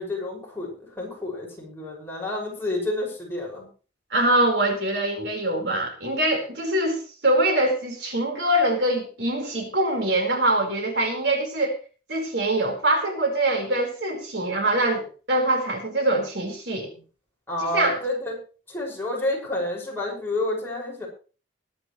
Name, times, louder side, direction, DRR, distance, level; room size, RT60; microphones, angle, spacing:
voice 1, 0.0-3.7 17.5-18.3 18.7-21.1, left 2 dB, 15° left, -2 dB, 6.1 m, -29 dB
voice 2, 4.1-11.7 12.1-17.0 17.7-18.0, right 1 dB, 65° right, 2 dB, 4.7 m, -24 dB
21.5 x 10.5 x 3.3 m, 0.36 s
head